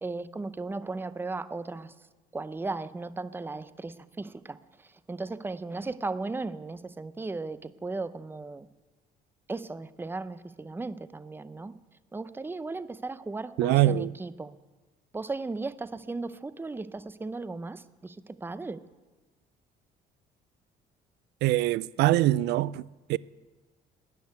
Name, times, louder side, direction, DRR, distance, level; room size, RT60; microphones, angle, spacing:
voice 1, 0.0-1.9 2.3-4.6 5.1-8.7 9.5-11.7 12.1-14.5 15.1-18.8, right 3 dB, 10° right, 0.6 m, -36 dB
voice 2, 13.6-14.1 21.4-22.8 23.1-23.2, right 15 dB, 80° right, 0.4 m, -23 dB
13.5 x 10.0 x 9.5 m
cardioid pair, 110°, 17 cm